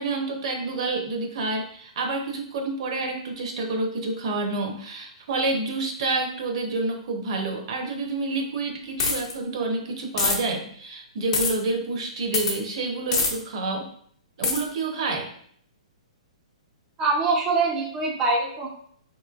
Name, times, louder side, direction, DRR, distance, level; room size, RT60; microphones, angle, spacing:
voice 1, 0.0-13.9 14.4-15.3, right 3 dB, 55° right, 3 dB, 0.8 m, -28 dB
sound 1, 9.0-9.3 10.2-10.4 11.3-11.5 12.3-12.6 13.1-13.3 14.4-14.6, left 4 dB, 55° left, 0.8 m, -23 dB
voice 2, 17.0-18.7, right 3 dB, 20° right, -2 dB, 0.5 m, -23 dB
4.4 x 3.0 x 2.4 m, 0.62 s
hypercardioid pair, 150°, 4 cm